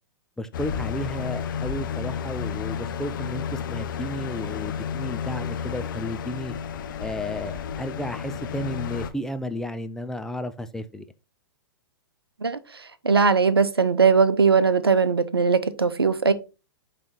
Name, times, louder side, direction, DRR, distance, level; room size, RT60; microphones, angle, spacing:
voice 1, 0.4-6.6 7.0-11.0, left 1 dB, 5° left, 0.5 m, -33 dB
sound 1, 0.5-9.1, left 7 dB, 60° left, 0.8 m, -32 dB
voice 2, 13.0-16.3, right 5 dB, 85° right, 0.7 m, -19 dB
8.7 x 3.3 x 4.2 m
figure-of-eight pair, 110°, 12 cm